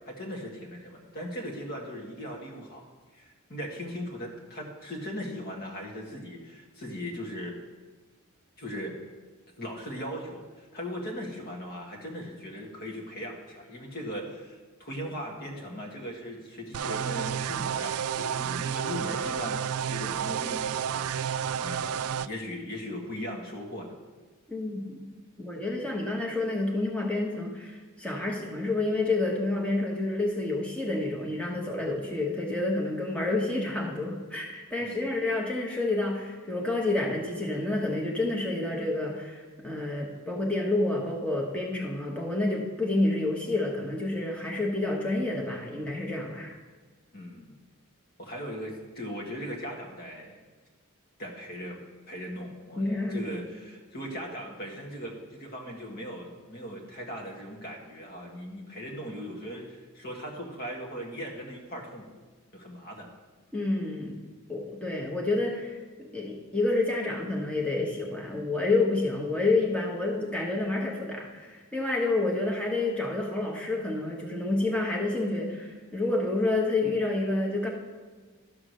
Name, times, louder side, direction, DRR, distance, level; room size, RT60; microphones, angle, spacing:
voice 1, 0.1-2.8 3.1-7.6 8.6-8.9 9.6-19.6 19.9-24.0 34.8-35.1 47.1-47.6 48.2-50.4 51.2-51.8 52.1-62.1 62.5-63.1, equal, 45° left, 0 dB, 1.8 m, -39 dB
sound 1, 16.7-22.3, right 8 dB, 85° right, 0.3 m, -31 dB
voice 2, 24.5-25.1 25.4-39.4 39.6-46.5 52.8-53.3 63.5-64.2 64.5-77.7, left 2 dB, 5° left, -1 dB, 1.2 m, -29 dB
12.5 x 4.9 x 6.3 m, 1.3 s
head